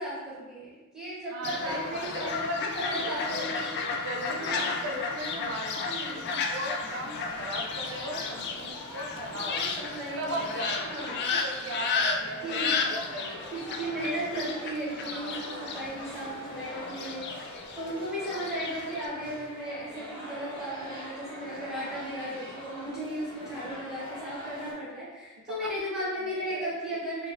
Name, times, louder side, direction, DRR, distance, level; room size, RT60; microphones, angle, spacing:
voice 1, 0.0-3.7 4.4-4.8 5.8-6.3 9.3-10.4 10.8-11.3 12.4-12.9 13.5-27.3, right 1 dB, 5° right, -10 dB, 1.1 m, -36 dB
voice 2, 1.3-3.4 4.0-9.6 10.2-13.5 14.9-15.8 25.5-25.7 26.0-27.0, right 1 dB, 65° right, 0 dB, 0.4 m, -38 dB
Fowl, 1.4-19.1, left 4 dB, 50° left, 0.3 m, -33 dB
sound 1, 6.8-24.7, equal, 25° left, 1.0 m, -44 dB
3.4 x 2.5 x 2.5 m, 1.2 s
head